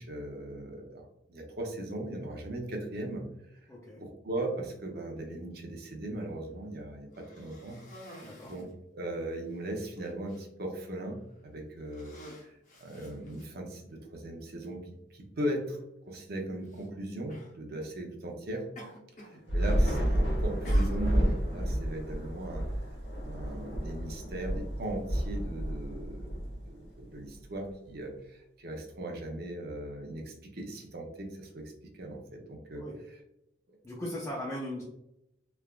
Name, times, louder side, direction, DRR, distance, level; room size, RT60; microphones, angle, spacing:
voice 1, 0.0-3.2 3.5-3.6 4.0-8.7 8.9-11.2 11.4-12.1 12.4-15.8 16.1-18.6 19.3-22.6 23.2-26.4 26.7-32.8 33.7-33.8, right 1 dB, 55° right, 2 dB, 0.6 m, -38 dB
voice 2, 3.7-4.0 8.2-8.5 32.8-32.9 33.8-34.8, left 1 dB, 15° left, -4 dB, 0.4 m, -38 dB
Cough, 7.1-8.7 9.5-9.6 10.0-10.4 11.2-11.4 11.8-13.8 14.7-14.8 16.6-16.9 17.3-17.6 18.8-19.4 19.7-20.1 20.6-21.4, equal, 40° left, 0.7 m, -50 dB
Thunder / Rain, 19.5-27.0, equal, 70° left, 1.2 m, -30 dB
3.2 x 2.3 x 2.3 m, 0.84 s
head